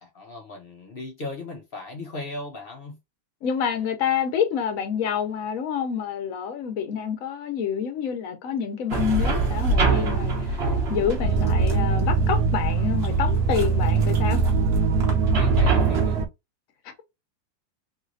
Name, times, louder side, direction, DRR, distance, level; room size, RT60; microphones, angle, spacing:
voice 1, 0.0-3.0 15.3-16.2, left 2 dB, 75° left, 0.5 m, -37 dB
voice 2, 3.4-10.6 10.9-14.4 16.8-16.9, left 7 dB, 55° left, 1.0 m, -27 dB
sound 1, 8.9-16.2, right 2 dB, 45° right, 1.0 m, -26 dB
sound 2, 11.2-16.3, right 5 dB, 70° right, 1.0 m, -22 dB
3.3 x 3.0 x 2.4 m
omnidirectional pair, 2.1 m